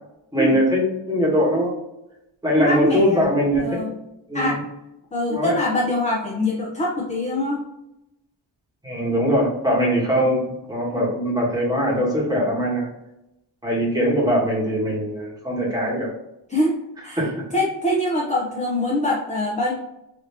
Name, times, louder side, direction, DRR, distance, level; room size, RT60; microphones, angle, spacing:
voice 1, 0.3-1.7 2.4-3.8 4.3-4.6 5.3-5.6 8.8-12.8 13.6-16.1 17.2-17.3, equal, 10° right, -4 dB, 1.1 m, -21 dB
voice 2, 2.6-3.3 3.6-3.9 4.3-4.6 5.1-7.6 16.5-16.7 17.0-19.7, left 1 dB, 15° left, -3 dB, 0.5 m, -23 dB
3.3 x 2.7 x 2.8 m, 0.87 s
wide cardioid pair, 130°, 47 cm